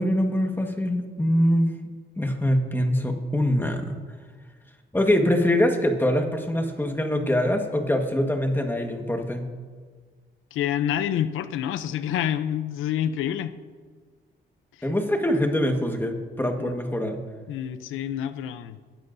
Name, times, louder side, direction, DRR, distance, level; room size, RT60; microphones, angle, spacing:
voice 1, 0.0-1.7 2.2-4.0 4.9-9.5 14.8-17.2, left 1 dB, 10° left, 4 dB, 1.5 m, -23 dB
voice 2, 10.5-13.5 14.7-14.8 16.6-16.7 17.5-18.8, left 10 dB, 90° left, 12 dB, 0.7 m, -28 dB
21.0 x 13.5 x 2.7 m, 1.5 s
cardioid pair, 90°, 20 cm